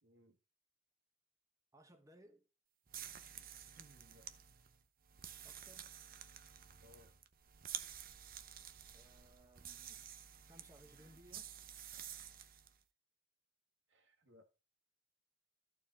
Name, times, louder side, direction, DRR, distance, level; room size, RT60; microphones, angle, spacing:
voice 1, 0.0-0.4 3.3-4.3 6.8-7.1 13.9-14.6, equal, 70° right, 2.1 m, -65 dB
voice 2, 1.7-2.5 5.4-6.0 8.9-10.1 10.4-11.5, right 1 dB, 15° right, 1.4 m, -63 dB
sound 1, 2.9-12.8, right 9 dB, 50° right, 0.8 m, -51 dB
13.5 x 4.7 x 4.0 m
head